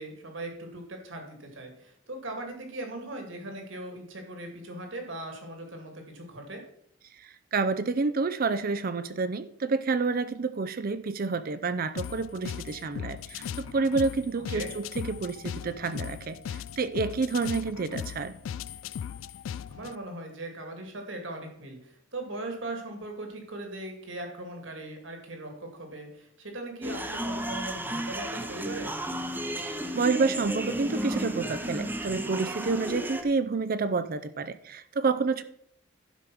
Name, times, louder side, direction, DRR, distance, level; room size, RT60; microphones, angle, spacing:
voice 1, 0.0-6.6 14.4-14.7 19.7-28.9, right 2 dB, 65° right, 3 dB, 2.3 m, -39 dB
voice 2, 7.5-16.4 16.8-18.3 29.6-35.4, right 4 dB, 45° right, 12 dB, 0.5 m, -29 dB
sound 1, 12.0-20.0, left 8 dB, 70° left, 0.3 m, -38 dB
sound 2, 26.8-33.2, right 1 dB, 10° right, 0.8 m, -33 dB
11.5 x 5.1 x 6.1 m, 0.70 s
head